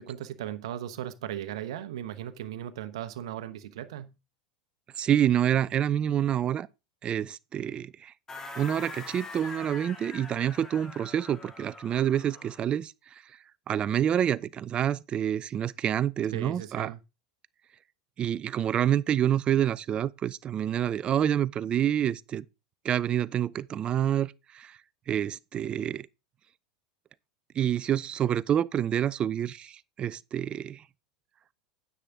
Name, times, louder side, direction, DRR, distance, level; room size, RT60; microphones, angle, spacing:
voice 1, 0.0-4.1 16.3-17.0, right 11 dB, 70° right, 1.0 m, -37 dB
voice 2, 5.0-6.7 7.0-8.1 8.6-12.9 13.7-16.9 18.2-22.4 22.8-24.8 25.1-26.1 27.6-30.8, right 10 dB, 35° right, 0.5 m, -27 dB
sound 1, 8.3-12.7, left 3 dB, 20° left, 2.5 m, -43 dB
9.9 x 8.5 x 3.7 m
hypercardioid pair, 85°, 3 cm